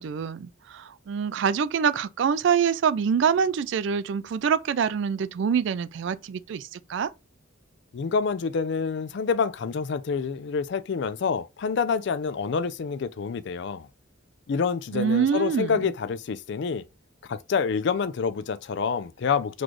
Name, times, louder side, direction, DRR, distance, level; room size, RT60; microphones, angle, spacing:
voice 1, 0.0-7.1 14.9-15.7, right 7 dB, 60° right, 0.3 m, -25 dB
voice 2, 7.9-13.9 14.5-16.8 17.3-19.6, left 5 dB, 55° left, 0.4 m, -27 dB
4.1 x 3.1 x 3.0 m
head